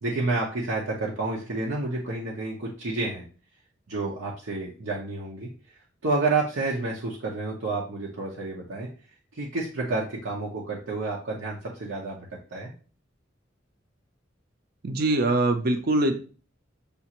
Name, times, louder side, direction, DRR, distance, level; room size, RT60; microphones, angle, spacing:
voice 1, 0.0-3.2 3.9-5.5 6.0-8.9 9.3-12.7, right 3 dB, 85° right, -3 dB, 0.8 m, -29 dB
voice 2, 14.8-16.1, right 2 dB, 50° right, 7 dB, 0.6 m, -23 dB
6.8 x 2.5 x 2.9 m, 0.37 s
head